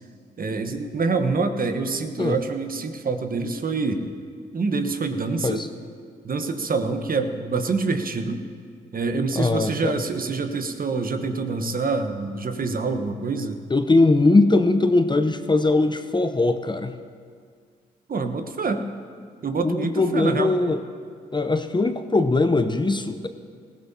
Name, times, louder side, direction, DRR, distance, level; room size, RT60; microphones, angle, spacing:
voice 1, 0.4-4.0 4.5-5.6 6.2-8.5 8.9-13.6 18.1-18.8 19.4-20.5, right 4 dB, 45° right, 7 dB, 1.2 m, -26 dB
voice 2, 9.3-10.0 13.7-16.9 19.6-20.8 21.3-23.3, left 2 dB, 20° left, 9 dB, 0.8 m, -20 dB
18.0 x 16.0 x 2.9 m, 2.1 s
hypercardioid pair, 40°, 21 cm